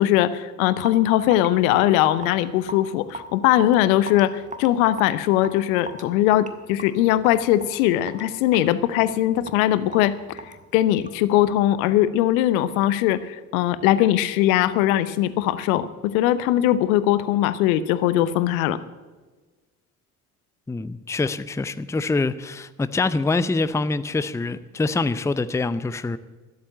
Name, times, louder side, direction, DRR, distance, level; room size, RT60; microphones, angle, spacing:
voice 1, 0.0-18.8, left 13 dB, 70° left, 16 dB, 0.9 m, -20 dB
Raindrop / Drip, 0.8-11.3, right 2 dB, 15° right, 1.7 m, -40 dB
voice 2, 20.7-26.2, left 3 dB, 5° left, 15 dB, 0.6 m, -25 dB
13.0 x 11.0 x 8.6 m, 1.3 s
figure-of-eight pair, 50°, 44 cm